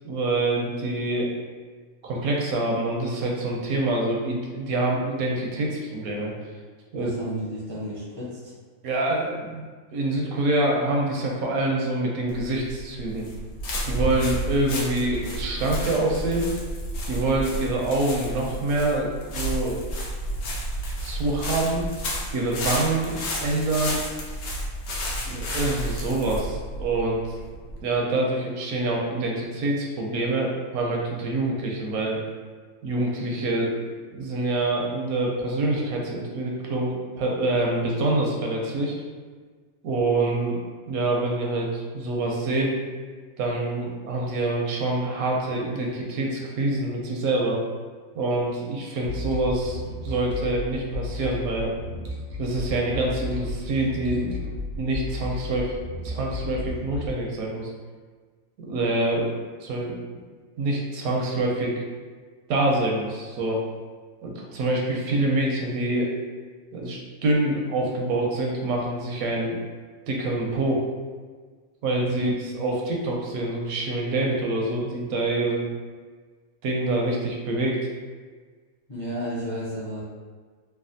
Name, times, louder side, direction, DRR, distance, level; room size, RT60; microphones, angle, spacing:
voice 1, 0.0-1.3 2.0-6.3 6.9-7.1 8.8-13.3 13.9-16.5 17.1-19.8 21.0-21.9 22.3-24.0 25.3-27.2 27.8-32.2 32.8-33.8 34.1-38.9 39.8-42.8 43.4-47.6 48.1-51.7 52.4-54.4 54.8-55.7 56.0-57.7 58.6-59.3 59.6-60.0 60.6-61.8 62.5-63.6 64.2-66.1 66.7-69.6 70.1-70.9 71.8-72.3 72.6-75.7 76.6-77.9, right 2 dB, 80° right, -1 dB, 1.0 m, -26 dB
voice 2, 6.9-8.4 72.1-72.2 78.9-80.0, equal, 35° left, -9 dB, 0.4 m, -32 dB
sound 1, 12.3-27.8, equal, 85° left, 1.1 m, -31 dB
sound 2, 49.0-57.1, left 2 dB, 65° right, 0.7 m, -33 dB
3.2 x 2.2 x 2.5 m, 1.5 s
omnidirectional pair, 1.5 m